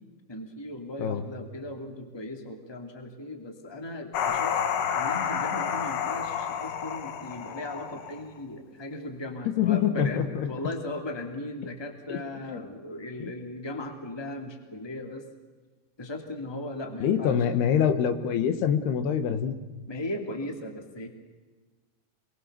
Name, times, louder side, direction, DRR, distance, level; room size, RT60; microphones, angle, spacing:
voice 1, 0.3-4.5 4.9-15.2 16.0-17.4 19.9-21.1, left 1 dB, 10° left, 4 dB, 1.9 m, -37 dB
sound 1, 4.1-8.4, left 8 dB, 65° left, 2.9 m, -30 dB
voice 2, 9.5-10.5 12.1-12.6 13.2-13.3 17.0-19.6, left 8 dB, 85° left, 10 dB, 3.4 m, -25 dB
28.0 x 22.0 x 6.8 m, 1.3 s
omnidirectional pair, 4.6 m